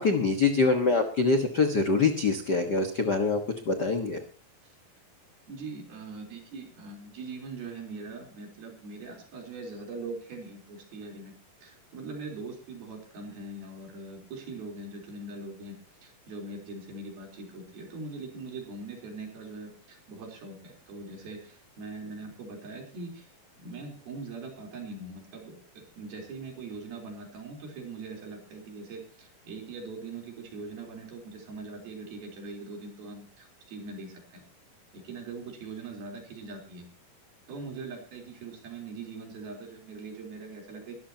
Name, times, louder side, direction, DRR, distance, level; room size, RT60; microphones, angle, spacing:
voice 1, 0.0-3.4 3.6-4.2, left 4 dB, 75° left, 6 dB, 0.9 m, -24 dB
voice 2, 5.5-11.3 11.6-23.3 23.6-34.4 34.9-36.9 37.5-41.0, right 3 dB, 85° right, 2 dB, 5.7 m, -41 dB
22.0 x 13.0 x 2.9 m, 0.37 s
omnidirectional pair, 4.2 m